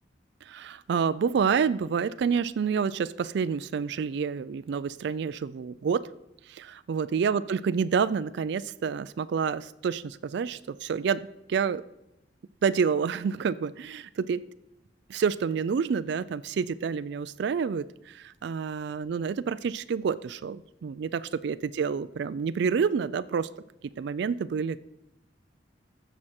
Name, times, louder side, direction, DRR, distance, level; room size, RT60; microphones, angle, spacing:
voice 1, 0.4-6.1 6.5-11.8 12.6-14.5 15.1-23.5 24.0-24.8, right 6 dB, 65° right, 14 dB, 0.3 m, -28 dB
15.0 x 6.0 x 4.3 m, 0.89 s
head